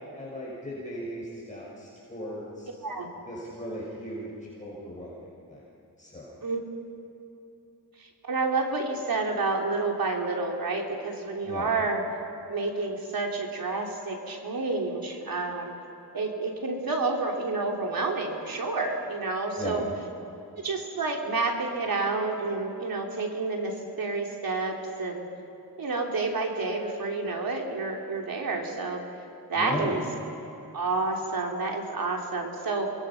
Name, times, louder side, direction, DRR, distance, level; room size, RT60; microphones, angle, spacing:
voice 1, 0.1-2.7 3.2-4.3 4.6-5.1 5.5-5.6 6.0-6.3 11.4-11.7 19.6-19.8 29.5-29.9, left 1 dB, 20° left, -6 dB, 6.2 m, -36 dB
voice 2, 8.3-12.0 12.5-15.7 16.1-19.9 20.6-23.7 24.0-24.7 25.0-25.2 25.8-29.0 29.5-30.0 30.7-32.9, right 3 dB, 65° right, 1 dB, 3.3 m, -29 dB
28.5 x 22.0 x 5.8 m, 2.8 s
wide cardioid pair, 90°, 38 cm